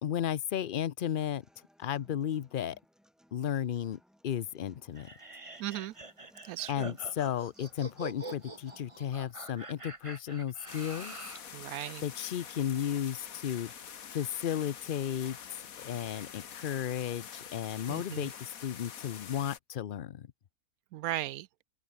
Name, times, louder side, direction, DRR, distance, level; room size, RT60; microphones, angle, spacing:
voice 1, 0.0-1.4 1.8-2.8 3.3-5.1 6.7-11.1 12.0-13.7 14.1-15.4 15.7-20.3, left 10 dB, 55° left, 0.6 m, -34 dB
Human voice / Acoustic guitar, 1.2-9.2, equal, ahead, 7.6 m, -65 dB
sound 1, 4.9-11.5, right 2 dB, 20° right, 2.0 m, -45 dB
voice 2, 5.6-5.9 6.4-7.0 11.5-12.1 17.9-18.3 20.9-21.5, right 15 dB, 80° right, 1.0 m, -37 dB
sound 2, 10.7-19.6, left 8 dB, 70° left, 1.7 m, -46 dB
open air
omnidirectional pair, 1.5 m